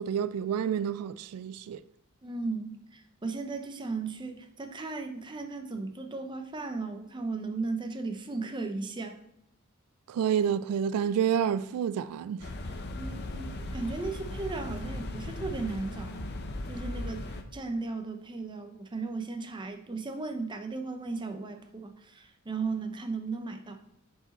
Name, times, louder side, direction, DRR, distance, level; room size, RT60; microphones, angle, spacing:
voice 1, 0.0-1.8 10.1-12.5, right 8 dB, 85° right, 0.3 m, -29 dB
voice 2, 2.2-9.2 13.0-16.3 16.7-17.3 17.5-23.8, right 3 dB, 20° right, 0.6 m, -36 dB
sound 1, 12.4-17.4, left 1 dB, 50° left, 0.7 m, -37 dB
6.8 x 4.8 x 4.1 m
head